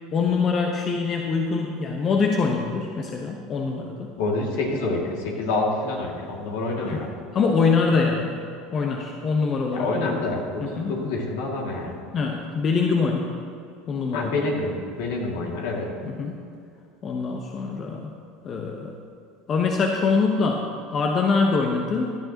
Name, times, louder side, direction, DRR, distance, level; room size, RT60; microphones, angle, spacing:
voice 1, 0.1-4.1 6.8-7.0 7.3-8.4 8.7-10.2 10.6-10.9 12.1-13.3 13.9-14.3 16.0-16.3 17.0-18.1 18.4-18.9 19.5-22.2, left 4 dB, 40° left, 1 dB, 1.1 m, -24 dB
voice 2, 4.2-7.1 9.7-12.0 14.1-15.9, left 2 dB, 70° left, -1 dB, 2.4 m, -27 dB
16.5 x 11.0 x 3.0 m, 2.5 s
hypercardioid pair, 80°, 0 cm